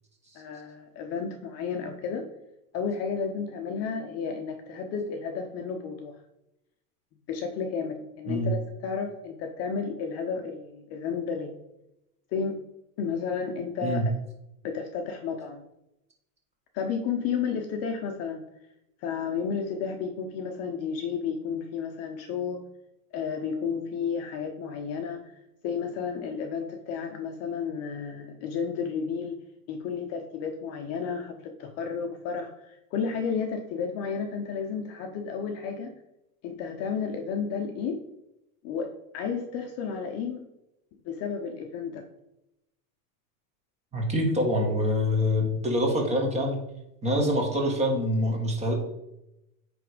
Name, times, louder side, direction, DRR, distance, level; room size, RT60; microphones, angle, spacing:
voice 1, 0.3-2.3 2.7-6.2 7.3-11.5 12.3-12.6 13.0-14.1 14.6-15.6 16.7-18.4 19.0-22.6 23.1-25.3 25.6-29.4 29.7-35.9 36.4-38.0 38.6-40.5 41.0-42.0, left 6 dB, 35° left, 4 dB, 0.8 m, -32 dB
voice 2, 43.9-46.6 47.0-48.7, left 1 dB, 15° right, 1 dB, 1.7 m, -25 dB
8.6 x 3.5 x 5.0 m, 0.87 s
supercardioid pair, 140°, 42 cm